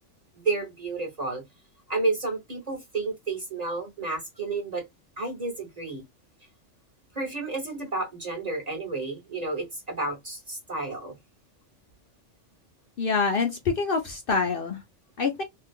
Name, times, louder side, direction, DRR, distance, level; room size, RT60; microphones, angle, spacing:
voice 1, 0.4-1.4 1.9-4.8 5.2-6.0 7.1-11.1, right 3 dB, 35° right, 0.8 m, -31 dB
voice 2, 13.0-14.8 15.2-15.4, left 4 dB, 55° left, 0.7 m, -26 dB
2.6 x 2.3 x 3.4 m
omnidirectional pair, 1.3 m